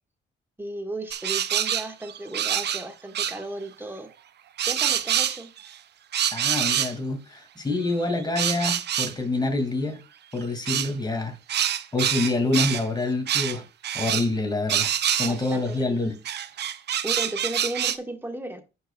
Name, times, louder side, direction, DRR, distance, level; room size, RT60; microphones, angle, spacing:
voice 1, 0.6-4.1 4.6-5.5 15.3-16.0 17.0-18.6, right 1 dB, 10° right, 1.6 m, -35 dB
sound 1, 1.1-2.8 3.1-3.4 4.6-5.7 6.1-6.9 7.9-9.1 10.7-10.9 11.5-12.8 13.3-13.6 13.8-14.3 14.7-15.5 16.2-18.0, right 10 dB, 60° right, 0.6 m, -26 dB
voice 2, 6.3-10.0 10.3-11.4 11.9-13.6 13.9-14.9 15.2-16.2, left 2 dB, 20° left, 2.2 m, -26 dB
14.5 x 5.5 x 2.3 m
cardioid pair, 90°, 20 cm